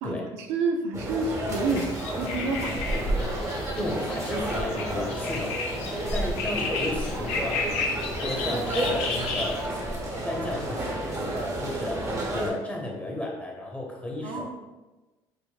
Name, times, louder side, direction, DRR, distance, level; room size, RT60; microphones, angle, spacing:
voice 1, 0.0-2.8 14.2-14.5, right 3 dB, 75° right, 3 dB, 0.4 m, -29 dB
sound 1, 0.9-12.5, right 1 dB, 30° right, 1.0 m, -31 dB
sound 2, 1.5-9.6, left 4 dB, 70° left, 0.6 m, -33 dB
voice 2, 3.8-5.6 5.9-9.6 10.2-14.5, left 1 dB, 15° left, -1 dB, 1.1 m, -34 dB
5.1 x 2.0 x 2.3 m, 1.1 s
supercardioid pair, 75°, 11 cm